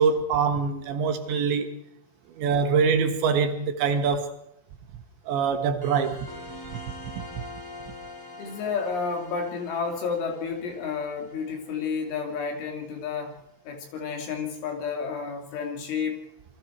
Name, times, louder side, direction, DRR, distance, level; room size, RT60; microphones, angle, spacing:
voice 1, 0.0-1.8 2.4-4.4 5.3-6.3 7.1-7.2, right 5 dB, 70° right, 3.4 m, -24 dB
sound 1, 5.8-12.9, left 2 dB, 10° left, 1.0 m, -45 dB
voice 2, 8.4-13.3 13.7-16.2, left 5 dB, 70° left, 5.2 m, -31 dB
28.0 x 22.0 x 4.6 m
omnidirectional pair, 5.8 m